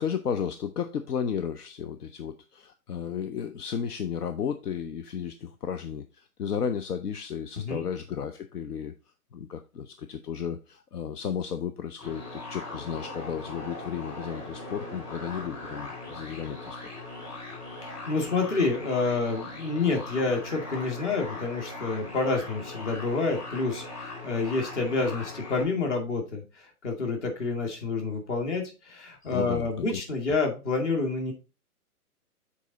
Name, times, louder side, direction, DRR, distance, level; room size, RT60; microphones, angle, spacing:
voice 1, 0.0-8.9 9.3-16.9 29.2-30.0, left 7 dB, 75° left, 0.8 m, -33 dB
sound 1, 12.0-25.6, left 2 dB, 10° left, 2.0 m, -40 dB
voice 2, 17.8-31.3, left 3 dB, 50° left, 2.2 m, -28 dB
7.2 x 4.2 x 3.9 m
hypercardioid pair, 155°, 46 cm